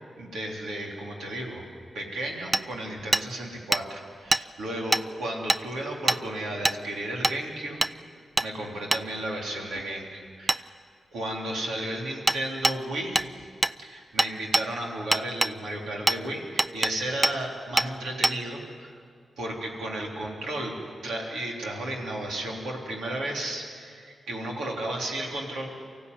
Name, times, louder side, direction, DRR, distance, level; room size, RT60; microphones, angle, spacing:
voice 1, 0.2-1.7 1.9-7.8 8.4-10.7 11.1-13.5 13.8-18.9 19.4-20.8 21.0-25.7, right 1 dB, 85° right, -1 dB, 3.5 m, -33 dB
Hammer, 2.5-2.6 3.1-3.3 3.7-3.8 4.3-4.4 4.9-5.0 5.5-5.6 6.1-6.2 6.6-6.8 7.2-7.4 7.8-7.9 8.4-8.5 8.9-9.0 10.5-10.6 12.3-12.4 12.6-12.8 13.2-13.3 13.6-13.8 14.2-14.7 15.1-15.5 16.1-16.2 16.6-16.9 17.2-17.4 17.8-17.9 18.2-18.4, right 1 dB, 25° right, 0.5 m, -23 dB
24.0 x 15.5 x 9.6 m, 2.2 s
supercardioid pair, 45°, 0 cm